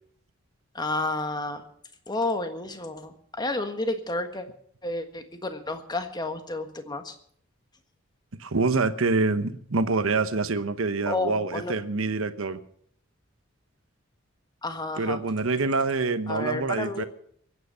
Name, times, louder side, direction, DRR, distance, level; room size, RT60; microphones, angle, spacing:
voice 1, 0.7-1.6 2.1-4.5 4.8-7.1 11.1-11.8 14.6-15.2 16.3-17.1, left 2 dB, 20° left, 7 dB, 1.5 m, -31 dB
voice 2, 8.4-12.6 15.0-17.0, right 3 dB, 75° right, 11 dB, 1.0 m, -26 dB
23.0 x 9.3 x 5.7 m, 0.65 s
head